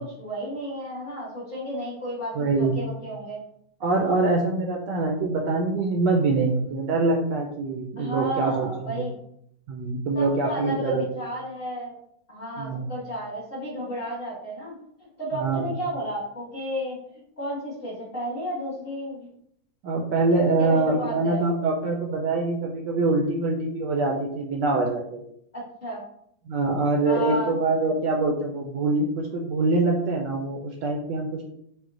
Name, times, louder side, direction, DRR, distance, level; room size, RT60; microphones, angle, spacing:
voice 1, 0.2-3.4 8.0-9.1 10.1-12.0 12.3-17.0 17.4-19.3 20.6-21.4 25.5-26.0 27.0-27.5, equal, 40° left, -7 dB, 0.9 m, -33 dB
voice 2, 2.3-2.8 3.8-9.1 9.7-11.1 12.6-12.9 15.3-15.8 19.8-25.2 26.5-31.5, right 3 dB, 75° right, 0 dB, 1.1 m, -24 dB
4.5 x 2.1 x 3.8 m, 0.72 s
omnidirectional pair, 2.2 m